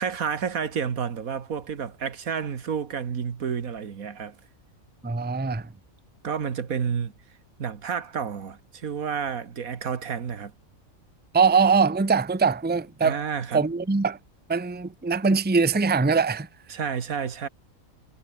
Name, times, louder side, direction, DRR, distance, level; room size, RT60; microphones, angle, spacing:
voice 1, 0.0-4.4 6.2-7.1 7.6-10.5 13.0-13.6 16.7-17.5, right 7 dB, 85° right, 2.0 m, -30 dB
voice 2, 5.0-5.7 11.3-13.2 13.5-14.2 14.5-16.5, right 5 dB, 10° right, 0.7 m, -22 dB
omnidirectional pair, 1.5 m